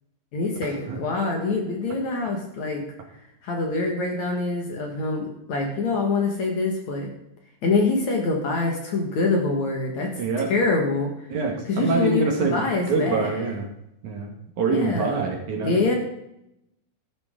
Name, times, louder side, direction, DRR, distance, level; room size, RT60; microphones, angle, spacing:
voice 1, 0.3-2.8 3.4-7.1 7.6-10.2 10.5-11.3 11.7-13.3 14.7-15.3 15.6-15.9, left 3 dB, 55° left, 1 dB, 2.5 m, -25 dB
voice 2, 10.2-10.5 11.3-13.7 14.0-16.0, right 4 dB, 55° right, 1 dB, 2.6 m, -25 dB
13.5 x 12.5 x 3.7 m, 0.83 s
omnidirectional pair, 4.6 m